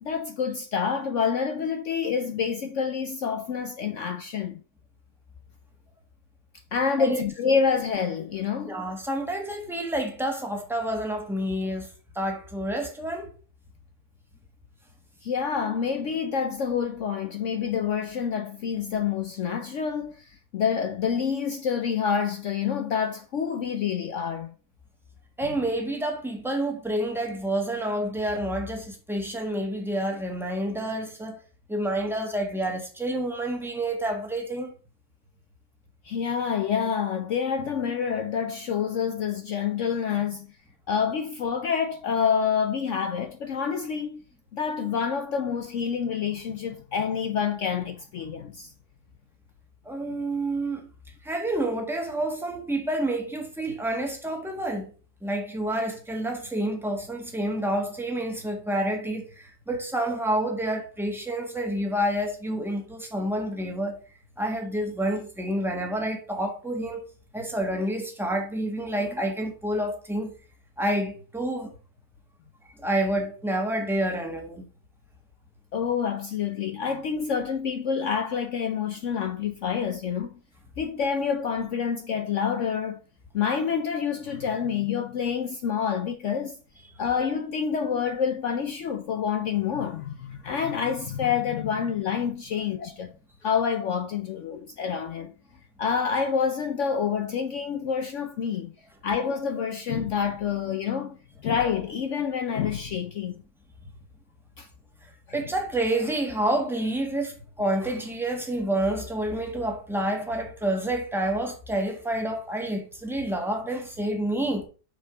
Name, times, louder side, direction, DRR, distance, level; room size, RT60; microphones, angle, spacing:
voice 1, 0.0-4.6 6.7-8.9 15.2-24.5 36.0-40.5 40.9-44.2 44.5-48.7 75.7-80.3 80.8-83.0 83.3-86.6 87.0-93.2 93.4-95.3 95.8-98.7 99.0-103.4 104.6-104.7 105.3-105.4, left 7 dB, 65° left, 0.8 m, -27 dB
voice 2, 8.7-13.3 25.4-31.4 31.7-34.7 49.8-50.9 51.2-54.9 55.2-64.0 64.4-67.0 67.3-70.3 70.8-71.7 72.8-74.7 105.0-114.6, right 1 dB, ahead, 1.2 m, -28 dB
6.1 x 4.5 x 4.8 m
omnidirectional pair, 1.7 m